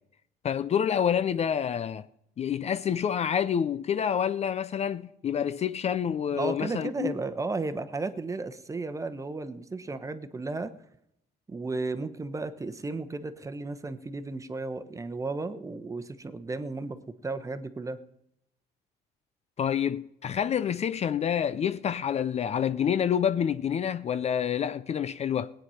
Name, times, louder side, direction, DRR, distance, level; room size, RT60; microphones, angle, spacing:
voice 1, 0.4-2.1 2.4-7.1 19.6-25.5, left 8 dB, 40° left, 0.5 m, -28 dB
voice 2, 6.4-10.7 11.5-18.0, right 3 dB, 20° right, 1.0 m, -34 dB
18.5 x 9.1 x 5.7 m
cardioid pair, 110°, 17 cm